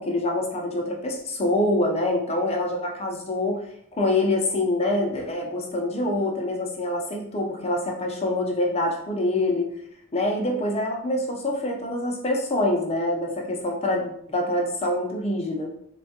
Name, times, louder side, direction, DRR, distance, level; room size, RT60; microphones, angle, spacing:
voice 1, 0.0-3.6 3.9-9.7 10.1-15.7, left 1 dB, 30° left, 1 dB, 0.5 m, -25 dB
3.2 x 2.2 x 2.8 m, 0.69 s
head